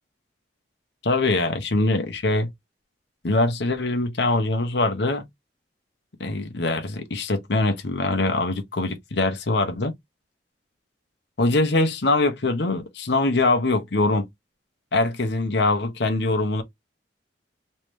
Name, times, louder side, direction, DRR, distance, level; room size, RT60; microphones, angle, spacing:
voice 1, 1.0-2.5 3.2-5.2 6.2-9.9 11.4-14.3 14.9-16.6, left 2 dB, 70° left, 0.9 m, -23 dB
3.1 x 2.8 x 3.3 m
head